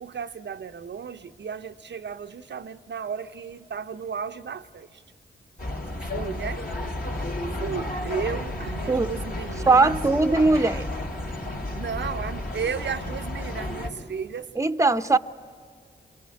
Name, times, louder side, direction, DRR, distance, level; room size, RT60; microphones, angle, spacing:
voice 1, 0.0-5.0 6.0-6.7 7.6-9.9 11.8-14.5 15.1-15.2, right 6 dB, 65° right, 0.6 m, -34 dB
sound 1, 5.6-13.9, left 1 dB, 50° left, 3.4 m, -32 dB
voice 2, 9.7-10.9 14.6-15.2, right 3 dB, 15° right, 0.7 m, -20 dB
26.5 x 22.0 x 8.4 m
cardioid pair, 45°, 20 cm